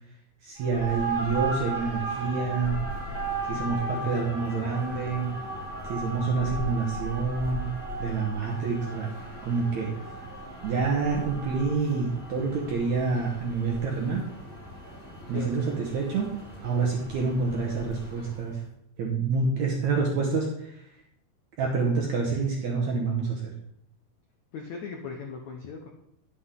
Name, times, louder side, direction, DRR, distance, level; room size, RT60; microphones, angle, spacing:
voice 1, 0.4-2.8 3.5-5.3 5.8-7.7 8.0-9.1 9.4-10.0 10.6-14.3 15.3-16.3 16.6-18.6 19.0-20.8 21.6-23.5, right 4 dB, 70° right, -1 dB, 1.8 m, -27 dB
sound 1, 0.6-18.5, right 2 dB, 10° left, 1.9 m, -36 dB
voice 2, 15.3-15.8 22.3-22.5 24.5-25.9, left 5 dB, 80° left, 2 dB, 1.6 m, -38 dB
10.0 x 7.8 x 3.7 m, 0.76 s
omnidirectional pair, 4.6 m